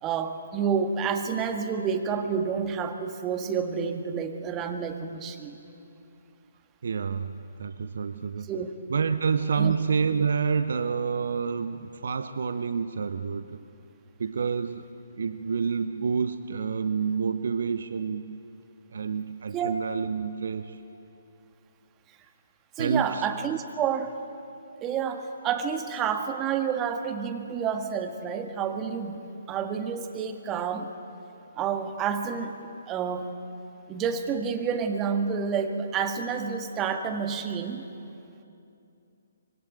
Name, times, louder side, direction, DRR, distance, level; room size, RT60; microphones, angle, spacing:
voice 1, 0.0-5.6 8.5-8.7 9.6-9.7 19.5-19.8 22.8-24.2 24.8-30.9 31.6-33.3 33.9-37.8, right 7 dB, 20° right, 5 dB, 1.7 m, -29 dB
voice 2, 6.8-8.5 8.9-13.6 14.2-14.9 15.2-18.4 18.9-20.8 22.8-23.3, right 5 dB, 55° right, 11 dB, 0.9 m, -28 dB
25.0 x 22.0 x 9.2 m, 2.7 s
figure-of-eight pair, 130°, 0 cm